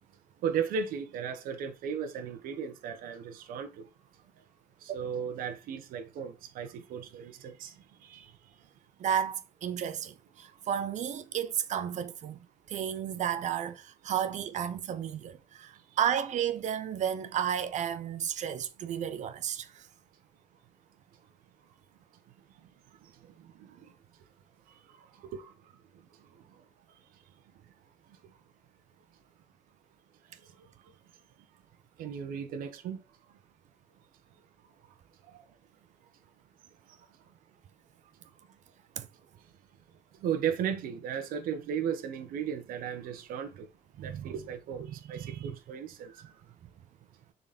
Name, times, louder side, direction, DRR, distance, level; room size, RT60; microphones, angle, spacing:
voice 1, 0.4-3.8 4.8-7.7 8.0-8.3 25.3-25.5 32.0-33.0 40.2-43.7 44.0-46.1, right 7 dB, 75° right, 1.3 m, -35 dB
voice 2, 9.0-19.9 39.0-39.1 44.0-44.3 45.4-45.5, right 9 dB, 55° right, 0.7 m, -33 dB
6.9 x 4.2 x 4.3 m
cardioid pair, 125°, 15 cm